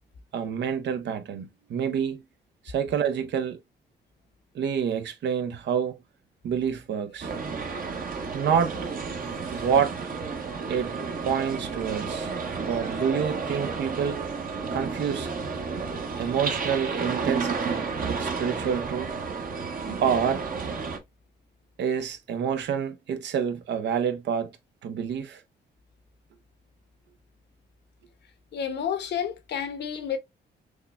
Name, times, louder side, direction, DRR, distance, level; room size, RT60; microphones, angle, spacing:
voice 1, 0.3-2.2 2.6-3.6 4.5-6.0 6.4-7.3 8.3-8.7 9.5-10.0 10.7-10.9 11.2-12.3 12.6-14.2 14.7-15.3 16.2-19.1 20.0-20.4 21.8-24.5 24.8-25.4, right 7 dB, 75° right, 0.8 m, -27 dB
sound 1, 7.2-21.0, right 4 dB, 50° right, 1.1 m, -32 dB
voice 2, 28.5-30.2, left 8 dB, 70° left, 0.9 m, -30 dB
6.4 x 2.3 x 2.4 m
cardioid pair, 70°, 18 cm